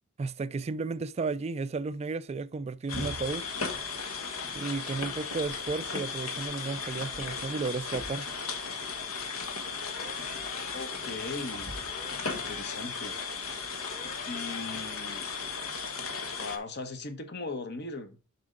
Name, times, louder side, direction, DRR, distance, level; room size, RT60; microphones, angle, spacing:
voice 1, 0.2-3.5 4.5-8.3, right 4 dB, 30° right, 0.3 m, -33 dB
Light rain falling at night in Hawaii, 2.9-16.6, left 4 dB, 80° left, 1.4 m, -36 dB
sound 1, 9.9-10.8 11.9-12.8 13.9-14.8, left 6 dB, 35° left, 0.5 m, -46 dB
voice 2, 10.7-11.7 12.3-13.2 14.3-15.3 16.4-18.2, left 3 dB, 50° left, 1.2 m, -38 dB
7.2 x 5.6 x 3.8 m
head